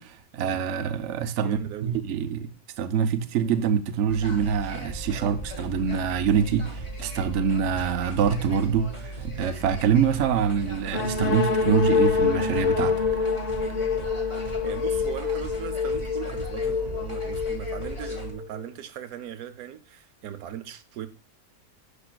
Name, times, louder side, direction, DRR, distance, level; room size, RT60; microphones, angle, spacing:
voice 1, 0.0-2.5 2.8-13.0, right 7 dB, 60° right, 0.9 m, -25 dB
voice 2, 1.4-2.0 14.3-21.1, right 10 dB, 80° right, 1.1 m, -38 dB
sound 1, 4.1-18.3, right 2 dB, 20° left, 1.6 m, -37 dB
sound 2, 10.9-18.6, left 5 dB, 40° left, 0.6 m, -26 dB
10.0 x 5.8 x 2.2 m
omnidirectional pair, 1.5 m